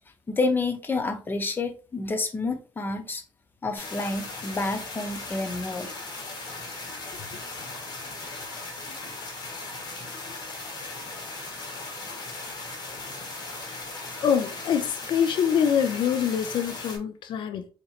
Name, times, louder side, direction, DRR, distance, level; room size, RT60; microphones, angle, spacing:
voice 1, 0.3-3.2 3.6-5.9, left 3 dB, 25° left, 0.6 m, -29 dB
sound 1, 3.8-17.0, left 2 dB, 60° left, 1.3 m, -38 dB
voice 2, 14.2-17.7, left 8 dB, 90° left, 0.4 m, -25 dB
4.2 x 2.9 x 2.4 m
cardioid pair, 125°, 8 cm